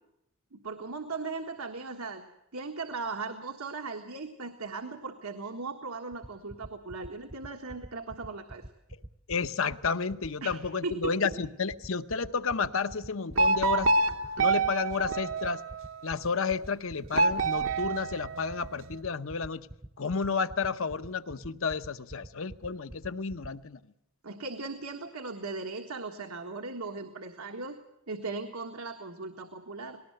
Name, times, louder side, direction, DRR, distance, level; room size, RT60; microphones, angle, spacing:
voice 1, 0.5-2.2 2.5-8.7 10.4-11.1 24.2-27.8 28.1-30.0, right 3 dB, 85° right, 4 dB, 1.6 m, -38 dB
sound 1, 6.1-23.5, right 1 dB, 20° right, 0.7 m, -43 dB
voice 2, 9.3-13.9 14.4-15.6 16.0-19.7 20.0-23.8, left 5 dB, 65° left, 12 dB, 0.9 m, -31 dB
sound 2, 13.3-16.0 17.1-18.9, right 3 dB, 65° right, 1.0 m, -27 dB
19.5 x 18.5 x 7.8 m, 0.84 s
head